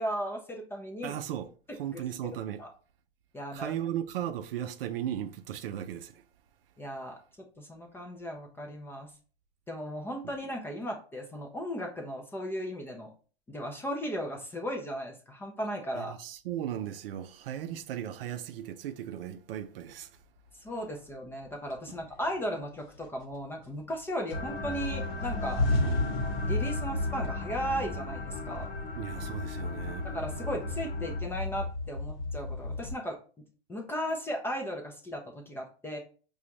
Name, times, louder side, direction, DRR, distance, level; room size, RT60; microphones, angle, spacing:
voice 1, 0.0-1.2 1.9-2.0 2.6-2.7 3.3-3.7 6.8-7.2 7.6-9.1 9.7-13.1 13.5-16.2 20.6-25.7 26.4-28.7 30.1-33.2 33.7-36.0, equal, 5° left, 0.4 m, -36 dB
voice 2, 1.0-2.6 3.5-6.2 10.2-10.3 15.9-20.2 21.9-22.0 29.0-30.1, right 10 dB, 65° right, 0.5 m, -36 dB
sound 1, 21.1-21.2 21.7-22.4 22.8-24.0 24.3-33.0, left 2 dB, 60° left, 1.0 m, -33 dB
sound 2, 24.3-31.2, left 2 dB, 30° left, 0.7 m, -39 dB
4.9 x 2.4 x 2.8 m
hypercardioid pair, 115°, 32 cm